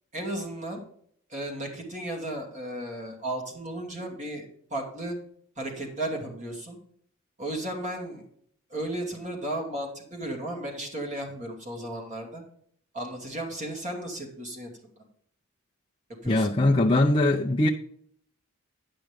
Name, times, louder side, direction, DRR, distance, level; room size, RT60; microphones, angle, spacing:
voice 1, 0.1-0.8 1.3-5.2 5.6-6.8 7.4-8.2 8.7-12.4 12.9-14.7 16.2-16.5, right 1 dB, 35° right, 2.5 m, -34 dB
voice 2, 16.3-17.7, left 2 dB, 25° left, 0.6 m, -21 dB
10.0 x 6.0 x 5.2 m
head